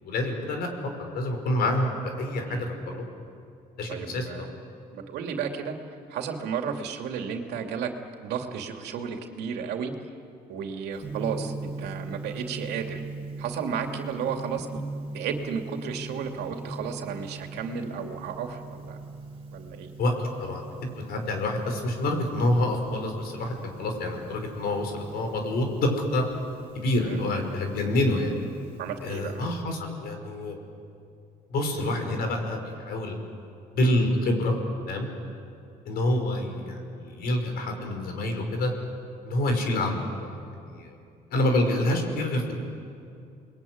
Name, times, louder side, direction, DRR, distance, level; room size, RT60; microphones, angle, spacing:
voice 1, 0.0-1.9 2.2-3.0 3.8-4.5 20.0-20.1 20.4-26.2 26.7-28.3 29.0-30.6 31.5-33.2 33.7-34.6 34.9-35.1 35.9-38.7 39.2-40.9 41.3-42.6, left 1 dB, 65° left, 4 dB, 5.7 m, -27 dB
voice 2, 3.9-4.5 4.9-5.8 6.1-7.9 8.2-9.9 10.5-13.0 13.4-14.8 15.1-19.0 19.5-19.9 27.0-27.2 28.8-29.4, right 7 dB, 80° right, 4 dB, 2.7 m, -33 dB
Gong, 11.0-29.6, right 3 dB, 30° right, 4.9 m, -41 dB
29.5 x 21.5 x 9.6 m, 2.5 s
cardioid pair, 110°, 17 cm